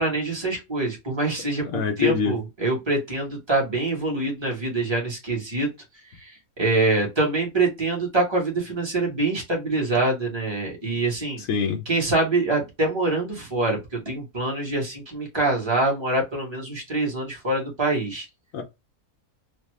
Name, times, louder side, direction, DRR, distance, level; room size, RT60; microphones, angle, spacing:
voice 1, 0.0-5.7 6.1-11.4 11.9-18.3, right 2 dB, 20° right, 1.2 m, -25 dB
voice 2, 1.7-2.4 11.4-11.8 18.5-18.6, left 6 dB, 70° left, 0.9 m, -24 dB
3.4 x 2.2 x 3.1 m
omnidirectional pair, 1.5 m